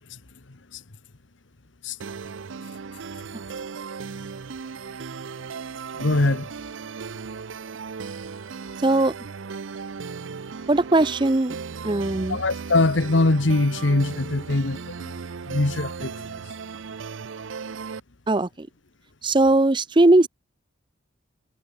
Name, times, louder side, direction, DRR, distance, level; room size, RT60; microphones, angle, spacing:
sound 1, 2.0-18.0, right 5 dB, 75° right, 0.6 m, -36 dB
voice 1, 6.0-6.5 12.3-15.1 15.5-16.1, left 2 dB, 70° left, 1.2 m, -22 dB
voice 2, 8.8-9.1 10.7-11.6 11.8-12.4 18.3-18.7 19.2-20.3, right 2 dB, 25° right, 0.6 m, -19 dB
head